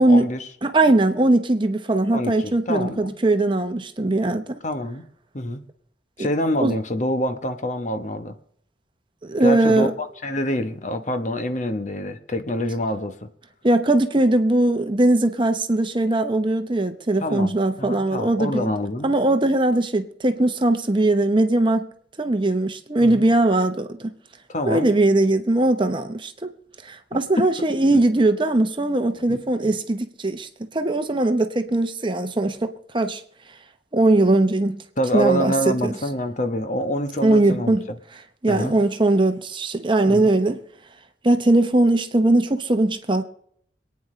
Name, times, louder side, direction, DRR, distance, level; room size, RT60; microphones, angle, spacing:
voice 1, 0.0-0.5 2.1-3.1 4.6-5.1 5.3-5.6 6.2-8.4 9.4-13.3 17.2-19.1 23.0-23.3 24.5-24.9 27.1-27.5 27.9-28.0 29.3-29.4 35.0-38.0 38.5-38.7 40.1-40.3, equal, 45° left, 1.1 m, -26 dB
voice 2, 0.6-4.6 6.2-6.3 6.6-6.7 9.2-9.9 13.6-18.7 19.0-21.9 22.2-24.1 24.7-26.5 26.8-30.5 30.7-33.2 33.9-34.8 35.1-35.9 37.2-37.8 38.4-40.6 41.2-43.3, right 2 dB, 30° right, 0.9 m, -20 dB
26.0 x 9.5 x 3.2 m
head